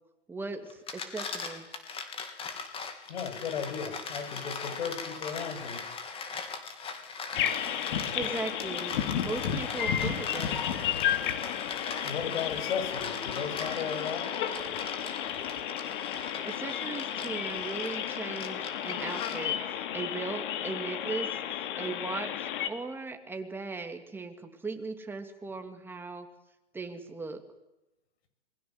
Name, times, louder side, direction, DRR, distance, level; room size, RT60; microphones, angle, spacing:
voice 1, 0.3-1.7 8.1-8.9 9.2-10.6 16.4-26.3 26.7-27.4, right 3 dB, 5° right, 5 dB, 2.7 m, -38 dB
sound 1, 0.7-19.7, left 5 dB, 15° left, 3.4 m, -40 dB
voice 2, 3.1-5.8 12.0-14.4, left 7 dB, 60° left, 7 dB, 7.9 m, -35 dB
sound 2, 7.3-22.7, left 10 dB, 45° left, 3.0 m, -33 dB
28.0 x 21.5 x 8.1 m, 0.94 s
hypercardioid pair, 140°, 36 cm